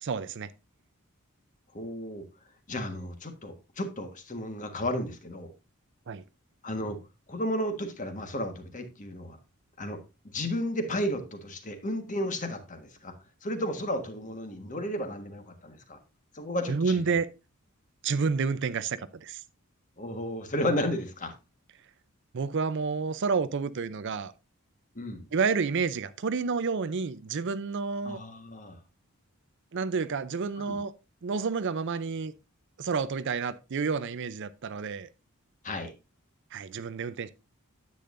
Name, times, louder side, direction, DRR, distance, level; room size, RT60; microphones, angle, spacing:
voice 1, 0.0-0.5 6.1-6.2 16.7-17.3 18.0-19.4 22.3-24.3 25.3-28.2 29.7-30.9 31.2-32.3 32.8-35.1 36.5-37.3, right 5 dB, 55° right, 0.5 m, -29 dB
voice 2, 1.7-2.2 2.7-5.5 6.6-7.0 7.3-9.4 9.8-10.0 10.2-13.1 13.4-16.0 16.3-17.2 20.0-21.3 24.9-25.2 28.0-28.8 30.6-30.8 35.6-35.9, left 1 dB, 35° left, 1.4 m, -33 dB
10.0 x 8.4 x 2.5 m
head